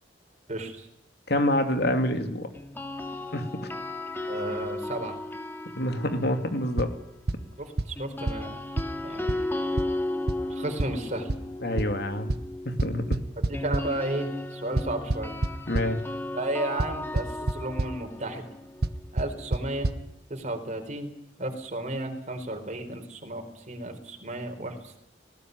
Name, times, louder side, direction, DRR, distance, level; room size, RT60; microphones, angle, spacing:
voice 1, 0.5-0.9 4.3-5.2 7.6-8.6 9.0-9.5 10.5-11.3 13.5-15.3 16.3-18.4 19.1-19.9 20.3-21.1 21.4-25.0, right 1 dB, 40° right, 5 dB, 4.4 m, -33 dB
voice 2, 1.3-2.5 3.3-3.7 5.8-6.9 11.6-12.3 12.6-13.2 15.7-16.0, left 1 dB, 65° left, 6 dB, 2.7 m, -27 dB
sound 1, 2.6-6.7 8.0-19.8, left 1 dB, 10° left, 2.1 m, -35 dB
sound 2, 6.8-6.9 7.3-7.4 7.8-7.9 8.3-8.4 8.8-8.9 9.3-9.4 9.8-9.9 10.3-10.4 10.8-10.9 11.3-11.4 11.8-11.9 12.3-12.4 12.8-13.8 14.8-15.9 16.8-16.9 17.2-17.5 17.8-17.9 18.8-18.9 19.2-19.3 19.5-19.6 19.8-19.9, right 2 dB, 60° right, 1.0 m, -25 dB
19.5 x 18.5 x 9.5 m, 0.81 s
head